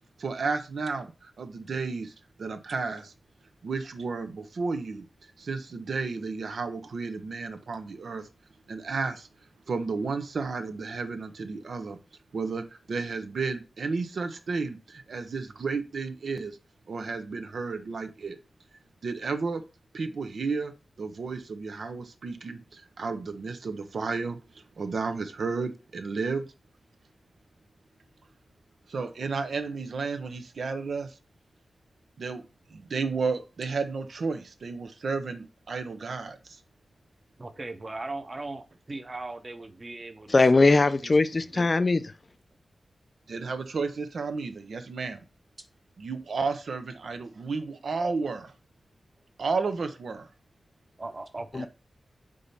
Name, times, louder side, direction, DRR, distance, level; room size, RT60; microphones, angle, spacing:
voice 1, 0.2-1.1 1.4-2.1 2.4-3.1 3.6-5.0 5.4-8.3 8.7-9.3 9.7-12.0 12.3-16.6 16.9-18.4 19.0-19.6 19.9-20.7 21.0-24.4 24.8-26.5 28.9-31.1 32.2-32.4 32.7-36.4 43.3-45.2 46.0-48.5 49.4-50.3 51.6-51.7, right 4 dB, 70° right, 0.8 m, -32 dB
voice 2, 37.4-40.7 41.0-41.1 41.5-41.7 51.0-51.7, right 2 dB, 30° right, 0.9 m, -39 dB
voice 3, 40.3-42.1 51.5-51.7, left 3 dB, 35° left, 0.4 m, -21 dB
5.0 x 4.1 x 5.6 m
wide cardioid pair, 105°, 0 cm